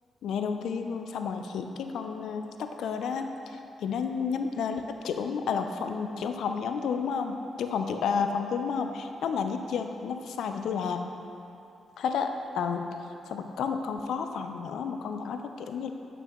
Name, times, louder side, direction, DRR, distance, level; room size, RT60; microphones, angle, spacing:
voice 1, 0.2-11.1 12.0-12.3 12.5-13.0 13.3-15.9, left 6 dB, 80° left, 6 dB, 0.4 m, -31 dB
8.9 x 5.9 x 3.0 m, 2.8 s
cardioid pair, 70°, 0 cm